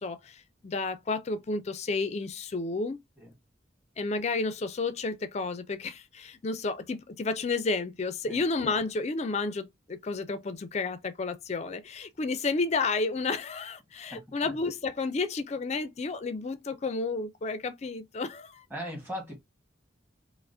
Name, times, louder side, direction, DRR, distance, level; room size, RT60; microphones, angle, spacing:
voice 1, 0.0-3.0 4.0-18.6, left 3 dB, 35° left, 0.4 m, -31 dB
voice 2, 14.1-14.5 18.7-19.4, equal, 10° right, 1.2 m, -39 dB
4.6 x 2.0 x 2.5 m
head